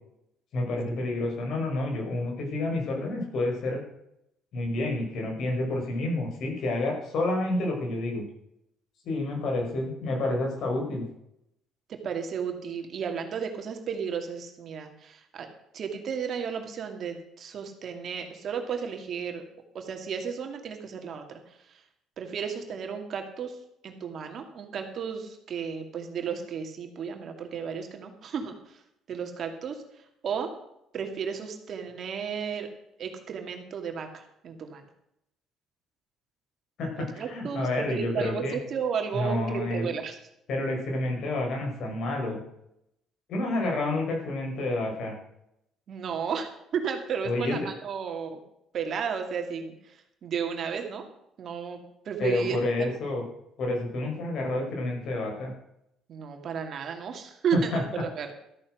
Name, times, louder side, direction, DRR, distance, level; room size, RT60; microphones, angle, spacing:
voice 1, 0.5-3.8 4.5-8.2 9.1-11.0 36.8-38.6 39.1-39.9 40.5-42.4 43.3-45.2 47.2-47.7 52.2-53.2 53.6-55.5 57.5-57.8, left 2 dB, 55° left, 1 dB, 5.4 m, -29 dB
voice 2, 11.9-15.5 15.7-19.4 19.7-21.4 22.2-23.6 23.8-28.8 29.1-29.8 30.2-30.5 30.9-32.7 33.0-34.8 37.0-40.2 45.9-48.4 48.7-51.0 51.4-52.9 56.1-58.3, right 6 dB, 45° right, 4 dB, 2.3 m, -33 dB
13.5 x 8.8 x 6.4 m, 0.79 s
cardioid pair, 130°, 0 cm